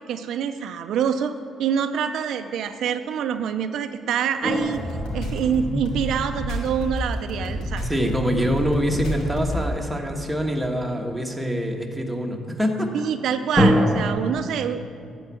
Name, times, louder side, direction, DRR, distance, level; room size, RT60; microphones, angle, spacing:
voice 1, 0.1-4.8 5.1-7.8 12.9-14.9, right 8 dB, 75° right, 8 dB, 0.5 m, -26 dB
sound 1, 4.4-6.5 13.6-14.2, equal, 15° left, 1.7 m, -23 dB
sound 2, 4.6-9.7, equal, 90° left, 2.6 m, -29 dB
voice 2, 7.9-12.9, equal, 5° right, 1 dB, 1.4 m, -25 dB
12.5 x 4.6 x 8.3 m, 2.6 s
cardioid pair, 90°, 0 cm